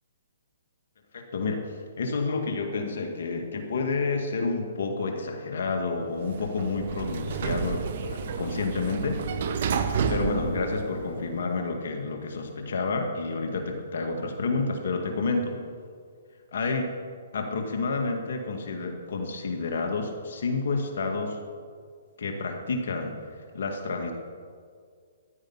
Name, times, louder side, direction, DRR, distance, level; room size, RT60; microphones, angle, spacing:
voice 1, 1.1-9.2 9.8-15.6 16.5-16.9 17.3-21.4 22.2-24.1, left 3 dB, 65° left, 3 dB, 1.9 m, -30 dB
Sliding door, 6.2-11.4, right 6 dB, 55° right, 1.1 m, -30 dB
14.5 x 11.0 x 5.7 m, 2.1 s
hypercardioid pair, 140°, 0 cm